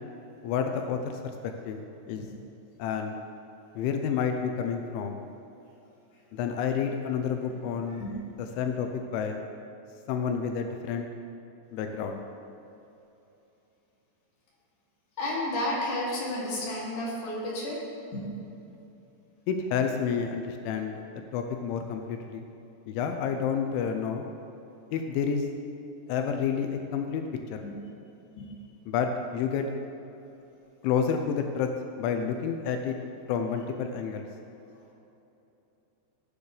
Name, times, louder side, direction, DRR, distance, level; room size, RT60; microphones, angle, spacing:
voice 1, 0.4-1.8 2.1-2.2 2.8-3.2 3.8-5.2 6.3-8.1 8.4-9.4 10.1-11.1 11.7-12.2 19.5-20.9 21.3-22.4 22.9-24.3 24.9-25.5 26.1-27.2 27.5-27.6 28.9-29.7 30.8-31.7 32.0-33.0 33.3-34.3, left 7 dB, 90° left, 5 dB, 3.2 m, -29 dB
voice 2, 15.2-17.8 18.1-18.2 27.6-27.7 28.4-28.5, left 1 dB, 45° left, -6 dB, 3.8 m, -31 dB
18.5 x 9.7 x 3.3 m, 3.0 s
omnidirectional pair, 5.3 m